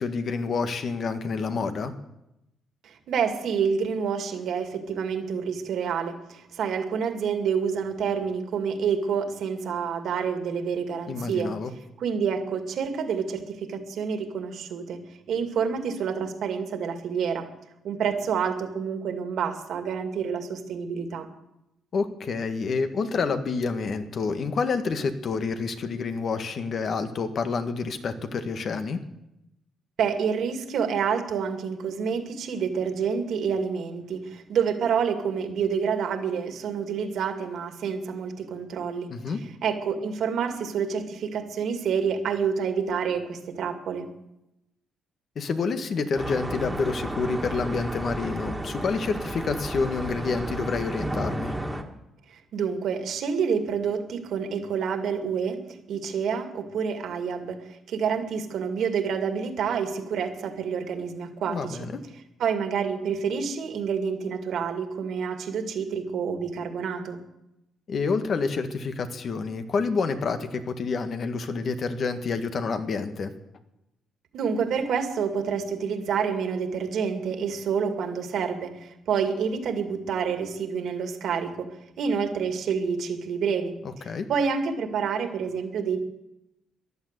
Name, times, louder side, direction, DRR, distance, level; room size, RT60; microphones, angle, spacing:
voice 1, 0.0-1.9 11.1-11.7 21.9-29.0 39.1-39.4 45.3-51.5 61.5-62.0 67.9-73.3 83.8-84.3, left 4 dB, 55° left, 8 dB, 1.7 m, -28 dB
voice 2, 2.8-11.5 12.0-15.0 15.3-17.5 17.8-21.3 30.0-39.1 39.6-44.1 52.3-55.6 55.9-61.8 62.4-67.2 74.3-81.7 82.0-83.8 84.3-86.0, right 6 dB, 70° right, 6 dB, 2.3 m, -28 dB
sound 1, 46.2-51.8, right 1 dB, 10° right, 2.2 m, -33 dB
14.5 x 11.5 x 8.2 m, 0.88 s
cardioid pair, 90°, 0 cm